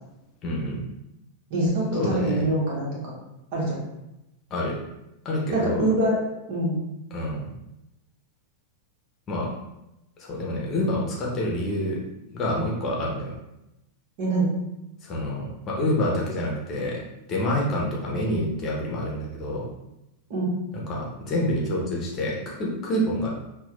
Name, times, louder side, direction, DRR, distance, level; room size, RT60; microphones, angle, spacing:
voice 1, 0.4-0.8 1.9-2.5 4.5-4.8 5.2-5.9 7.1-7.5 9.3-9.5 10.2-12.0 12.3-13.3 15.0-17.0 17.3-19.7 20.7-23.3, left 1 dB, 30° left, -2 dB, 0.9 m, -27 dB
voice 2, 1.5-3.1 3.5-3.8 5.5-6.2 6.5-6.8 14.2-14.5 20.3-20.5, right 1 dB, 45° right, -4 dB, 1.3 m, -24 dB
5.9 x 2.4 x 2.4 m, 0.91 s
figure-of-eight pair, 90°, 0 cm